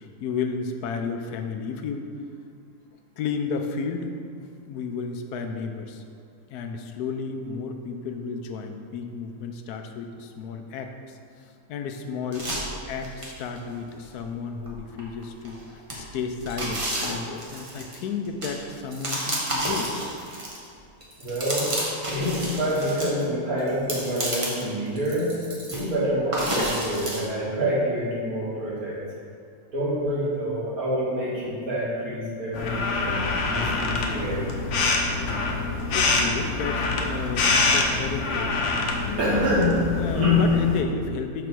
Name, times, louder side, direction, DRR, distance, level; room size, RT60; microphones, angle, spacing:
voice 1, 0.0-2.1 3.2-4.1 4.7-6.0 6.5-19.9 35.9-38.6 39.0-41.5, left 5 dB, 90° left, 5 dB, 1.2 m, -32 dB
sound 1, 12.3-13.6 14.0-14.1 14.6-15.5 15.9-20.7 21.0-23.1 23.6-24.7 25.0-25.9 26.3-27.2, right 1 dB, 25° right, 1.0 m, -31 dB
voice 2, 21.2-21.7 22.1-25.3 25.7-29.0 29.7-34.5 39.2-39.8 40.1-40.4, equal, 70° right, -8 dB, 2.2 m, -26 dB
sound 2, 32.5-40.8, left 3 dB, 60° left, 0.9 m, -25 dB
6.7 x 3.4 x 6.0 m, 2.3 s
omnidirectional pair, 1.6 m